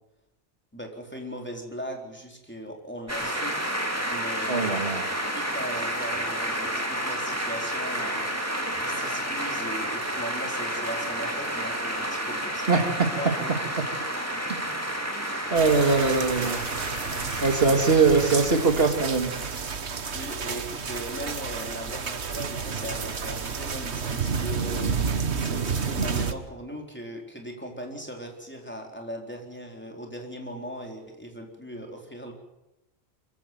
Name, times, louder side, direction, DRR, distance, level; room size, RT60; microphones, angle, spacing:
voice 1, 0.7-3.7 4.1-4.9 5.3-8.4 8.8-12.6 13.1-13.5 20.1-24.9 25.4-32.3, equal, 10° left, 1 dB, 4.1 m, -38 dB
sound 1, 3.1-19.7, right 1 dB, 15° right, 2.6 m, -31 dB
voice 2, 4.5-5.0 12.7-13.1 15.5-16.6 17.4-19.3, right 4 dB, 65° right, 6 dB, 2.2 m, -21 dB
sound 2, 15.6-26.3, right 5 dB, 85° right, 1.6 m, -31 dB
24.0 x 16.0 x 9.3 m, 0.93 s
omnidirectional pair, 1.1 m